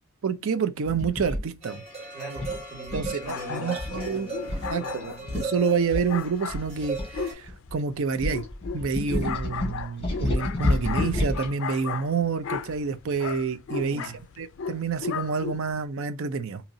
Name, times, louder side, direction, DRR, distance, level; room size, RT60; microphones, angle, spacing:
voice 1, 0.2-1.8 2.9-4.3 4.7-8.4 8.7-16.6, right 5 dB, 60° right, 0.4 m, -28 dB
sound 1, 0.9-1.4 2.4-3.3 3.8-4.1 4.5-4.7 5.0-5.1 5.3-5.5 5.9-7.7 8.2-11.5, left 1 dB, 25° left, 1.4 m, -29 dB
sound 2, 1.6-7.3, right 4 dB, 25° right, 1.1 m, -37 dB
voice 2, 2.1-5.3 13.7-14.2, equal, 10° right, 2.4 m, -40 dB
sound 3, 3.3-15.9, left 6 dB, 60° left, 0.3 m, -36 dB
3.9 x 2.8 x 2.6 m
head